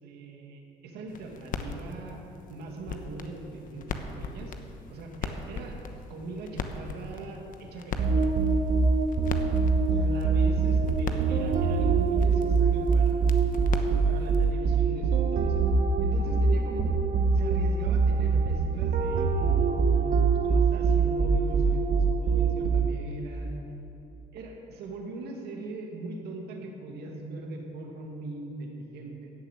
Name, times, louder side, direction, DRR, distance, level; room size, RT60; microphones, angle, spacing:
voice 1, 0.0-2.2 2.5-4.5 4.9-5.8 6.1-8.3 9.9-13.3 14.1-15.6 16.0-17.0 17.3-23.5 24.3-29.3, right 2 dB, 75° right, 1 dB, 2.3 m, -40 dB
sound 1, 1.1-14.5, left 4 dB, 55° left, 1.1 m, -40 dB
sound 2, 8.0-23.1, right 4 dB, 50° right, 1.0 m, -24 dB
14.5 x 7.1 x 9.2 m, 2.8 s
cardioid pair, 110°, 17 cm